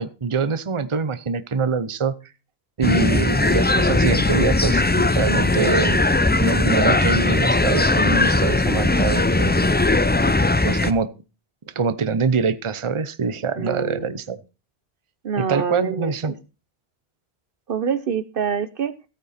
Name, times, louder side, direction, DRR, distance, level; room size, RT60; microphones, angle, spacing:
voice 1, 0.0-2.2 2.8-6.0 6.4-9.9 10.6-11.1 11.7-14.4 15.4-16.3, right 5 dB, 30° right, 13 dB, 0.8 m, -24 dB
sound 1, 2.8-10.9, left 2 dB, 15° left, 0.3 m, -19 dB
voice 2, 13.6-14.2 15.2-16.1 17.7-18.9, right 6 dB, 60° right, 14 dB, 1.0 m, -26 dB
14.5 x 9.1 x 4.2 m, 0.31 s
omnidirectional pair, 1.1 m